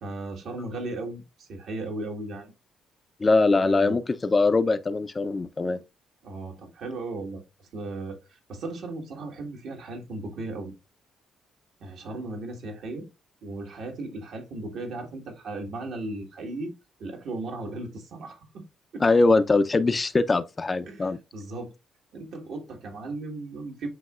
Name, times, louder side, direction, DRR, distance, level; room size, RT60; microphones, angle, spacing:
voice 1, 0.0-2.5 3.5-4.0 6.2-7.4 7.7-8.2 8.5-10.7 11.8-13.1 13.4-16.7 17.0-18.6 18.9-19.0 20.9-21.7 22.1-23.9, right 2 dB, 70° right, 1.4 m, -36 dB
voice 2, 3.2-5.8 19.0-21.2, left 3 dB, 30° left, 0.4 m, -22 dB
7.7 x 2.8 x 2.3 m
cardioid pair, 90°, 0 cm